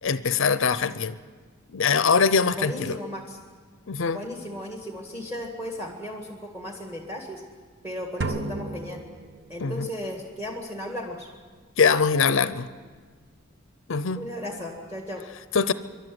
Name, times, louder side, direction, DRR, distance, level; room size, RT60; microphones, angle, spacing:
voice 1, 0.0-1.2 1.7-3.0 3.9-4.2 9.6-9.9 11.8-12.7 13.9-14.2 15.5-15.7, left 5 dB, 60° left, 14 dB, 0.6 m, -22 dB
voice 2, 2.6-3.4 4.1-7.4 7.8-9.0 9.5-11.3 14.2-15.2, left 1 dB, 15° right, 2 dB, 1.8 m, -35 dB
sound 1, 8.2-9.9, right 2 dB, 55° right, 1.1 m, -33 dB
24.5 x 11.5 x 9.2 m, 1.5 s
head